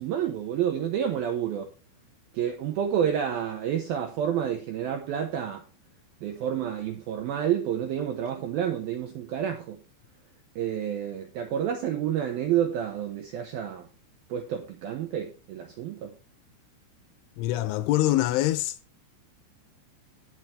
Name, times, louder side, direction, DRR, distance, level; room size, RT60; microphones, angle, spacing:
voice 1, 0.0-1.7 2.3-5.6 6.2-9.8 10.6-13.9 14.3-16.1, right 9 dB, 80° right, 2.2 m, -29 dB
voice 2, 17.4-18.8, left 15 dB, 80° left, 2.9 m, -24 dB
18.5 x 6.3 x 3.2 m
omnidirectional pair, 5.8 m